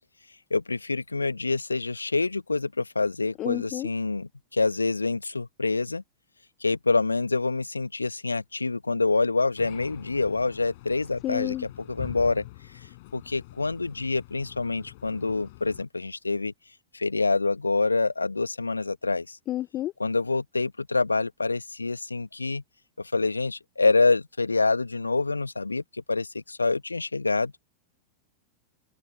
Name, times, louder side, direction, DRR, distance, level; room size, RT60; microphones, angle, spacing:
voice 1, 0.5-6.0 6.6-12.4 13.1-16.5 16.9-19.4 20.0-22.6 23.0-27.5, left 3 dB, 80° left, 1.5 m, -26 dB
voice 2, 3.4-3.9 11.2-11.6 19.5-19.9, left 14 dB, 35° left, 1.0 m, -30 dB
sound 1, 9.6-15.9, left 20 dB, 50° left, 5.4 m, -45 dB
open air
figure-of-eight pair, 90°, 0 cm